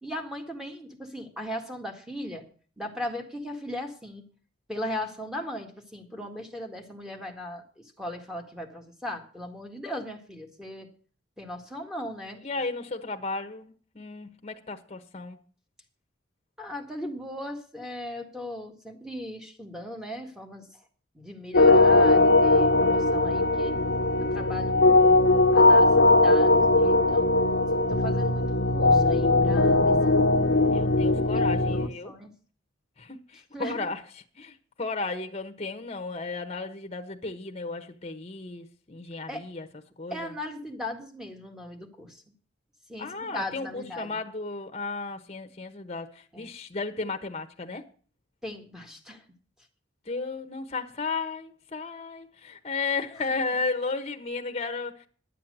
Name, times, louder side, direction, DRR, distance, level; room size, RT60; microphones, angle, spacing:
voice 1, 0.0-2.4 2.8-4.2 4.7-10.9 11.4-12.4 16.6-20.8 21.1-23.7 24.2-27.3 27.7-30.4 31.3-31.4 31.7-32.3 33.5-33.8 39.3-39.4 40.1-42.2 42.9-44.2 46.3-46.5 48.4-49.2 53.3-53.4, left 1 dB, 5° right, 1.8 m, -38 dB
voice 2, 12.4-15.4 30.5-32.1 33.0-34.0 34.3-39.7 40.0-40.3 43.0-47.8 50.0-55.1, left 3 dB, 35° left, 1.2 m, -34 dB
sound 1, 21.5-31.9, left 2 dB, 60° left, 0.9 m, -20 dB
11.0 x 7.7 x 7.8 m
head